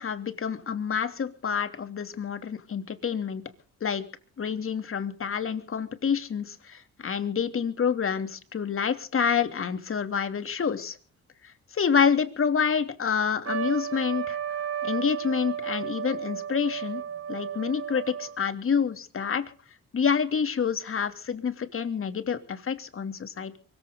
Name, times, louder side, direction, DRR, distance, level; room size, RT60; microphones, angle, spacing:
voice 1, 0.0-3.4 3.8-4.1 4.4-11.0 11.7-14.4 14.8-17.0 17.3-19.5 19.9-23.6, left 6 dB, 45° left, 10 dB, 3.0 m, -28 dB
Trumpet, 13.4-18.5, right 9 dB, 50° right, 2.2 m, -33 dB
24.0 x 15.0 x 3.9 m, 0.41 s
cardioid pair, 90°, 30 cm